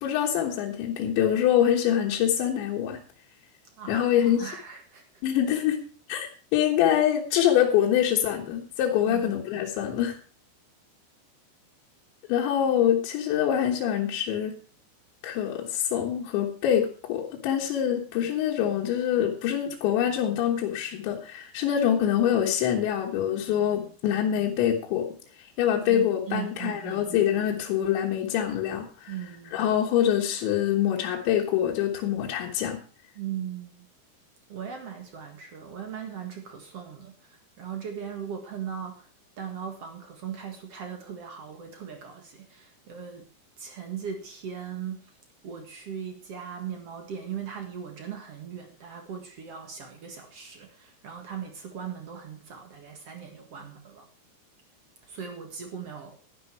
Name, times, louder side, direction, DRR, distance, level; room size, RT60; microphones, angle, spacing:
voice 1, 0.0-3.0 3.9-4.5 5.2-5.8 6.1-10.2 12.3-14.5 15.2-25.1 25.4-29.1 29.5-32.8, left 10 dB, 80° left, -1 dB, 3.6 m, -25 dB
voice 2, 3.8-5.0 9.0-9.4 25.8-27.3 29.1-29.6 33.1-33.9 34.5-39.1 39.4-43.3 43.6-45.1 45.4-54.1 55.0-56.2, right 8 dB, 55° right, 4 dB, 1.7 m, -38 dB
11.5 x 11.0 x 4.7 m, 0.40 s
omnidirectional pair, 5.2 m